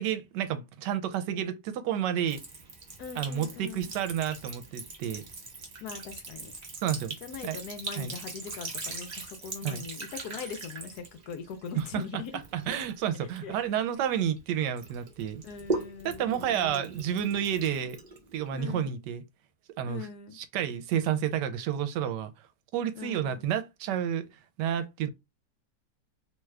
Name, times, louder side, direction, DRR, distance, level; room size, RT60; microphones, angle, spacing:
voice 1, 0.0-2.4 3.2-5.2 6.8-7.2 7.4-7.6 8.0-8.2 9.6-9.8 11.8-12.0 12.5-15.4 16.0-18.0 18.3-19.2 19.8-20.1 20.3-22.3 22.7-24.3 24.6-25.1, right 9 dB, 80° right, 1.2 m, -30 dB
Sink (filling or washing) / Trickle dribble, 2.3-14.4 14.8-18.6, right 3 dB, 45° right, 0.5 m, -40 dB
voice 2, 3.0-3.9 5.8-6.5 7.2-12.3 13.4-13.5 15.4-16.9 18.5-19.0 19.8-20.4 23.0-23.4, left 6 dB, 70° left, 1.1 m, -41 dB
3.0 x 2.3 x 3.2 m
omnidirectional pair, 1.8 m